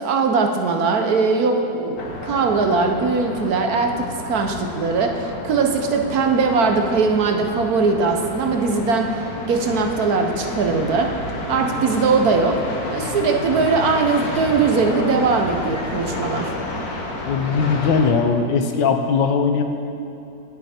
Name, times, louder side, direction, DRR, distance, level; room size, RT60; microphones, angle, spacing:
voice 1, 0.0-9.1 9.5-11.1 11.5-12.6 12.9-16.5, right 4 dB, 60° right, 4 dB, 1.2 m, -20 dB
sound 1, 2.0-18.1, left 2 dB, 60° left, 1.7 m, -31 dB
voice 2, 17.3-19.6, left 5 dB, 85° left, 6 dB, 1.5 m, -19 dB
18.5 x 6.6 x 4.3 m, 2.8 s
omnidirectional pair, 1.9 m